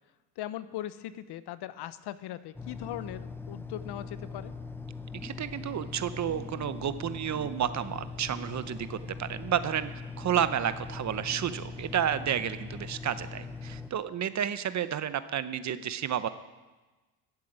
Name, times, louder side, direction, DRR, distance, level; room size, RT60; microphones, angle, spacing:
voice 1, 0.4-4.5, left 13 dB, 60° left, 15 dB, 0.8 m, -39 dB
sound 1, 2.6-13.9, left 4 dB, 5° left, 0.8 m, -41 dB
voice 2, 5.2-9.9 10.2-16.3, right 9 dB, 40° right, 13 dB, 0.8 m, -31 dB
13.0 x 7.7 x 8.7 m, 1.2 s
cardioid pair, 100°, 45 cm